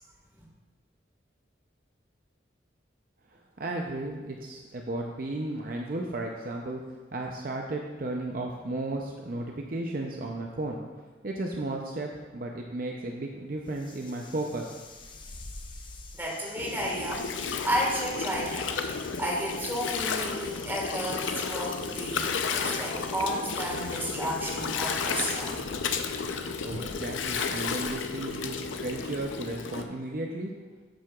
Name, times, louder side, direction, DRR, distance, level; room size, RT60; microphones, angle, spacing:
voice 1, 3.3-6.8 7.1-14.7 26.6-30.5, right 2 dB, 50° right, 1 dB, 0.6 m, -34 dB
sound 1, 13.6-25.7, left 3 dB, 25° left, 0.5 m, -47 dB
voice 2, 16.1-22.3 22.5-25.5, equal, 10° right, -3 dB, 1.6 m, -32 dB
Gurgling, 16.6-29.8, left 5 dB, 90° left, 0.6 m, -33 dB
10.5 x 7.5 x 2.4 m, 1.3 s
head